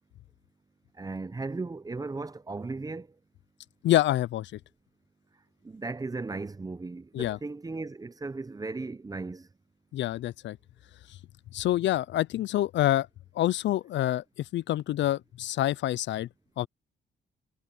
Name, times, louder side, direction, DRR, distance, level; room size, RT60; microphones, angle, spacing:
voice 1, 1.0-3.1 5.6-9.5, right 3 dB, 20° right, 0.8 m, -36 dB
voice 2, 3.8-4.6 7.1-7.4 9.9-10.6 11.5-13.1 13.3-16.3 16.6-16.7, left 13 dB, 65° left, 0.5 m, -27 dB
cardioid pair, 90°, 20 cm